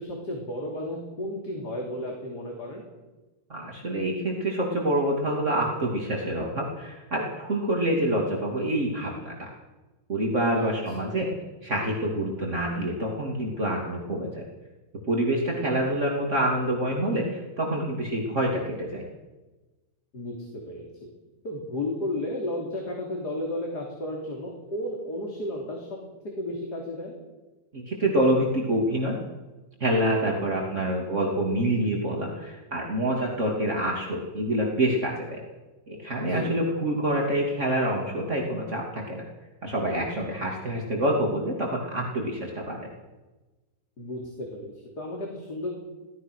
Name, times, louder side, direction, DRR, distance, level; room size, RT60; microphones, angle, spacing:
voice 1, 0.0-2.8 10.5-11.2 20.1-21.1 21.4-26.0 26.2-27.1 36.2-36.6 44.0-45.7, left 1 dB, 65° left, 0 dB, 3.8 m, -33 dB
voice 2, 3.5-9.5 10.1-11.3 11.6-14.5 15.1-19.0 27.7-29.2 29.8-35.4 35.9-39.2 39.6-42.9, right 1 dB, 40° right, -1 dB, 3.1 m, -27 dB
24.0 x 17.5 x 6.4 m, 1.2 s
omnidirectional pair, 1.9 m